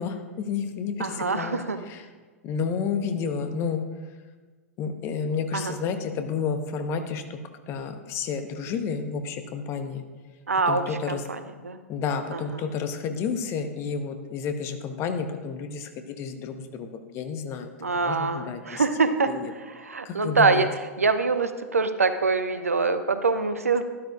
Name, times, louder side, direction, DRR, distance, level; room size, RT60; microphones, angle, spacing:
voice 1, 0.0-1.6 1.9-2.0 2.4-3.8 4.8-7.4 7.7-10.0 10.7-11.2 11.9-18.8 19.3-19.5 20.0-20.6, left 6 dB, 35° left, 7 dB, 1.0 m, -31 dB
voice 2, 1.0-1.8 5.5-5.7 10.5-11.8 12.3-12.6 17.8-23.8, right 4 dB, 75° right, 10 dB, 0.7 m, -25 dB
12.0 x 11.5 x 2.4 m, 1.4 s
figure-of-eight pair, 95°, 8 cm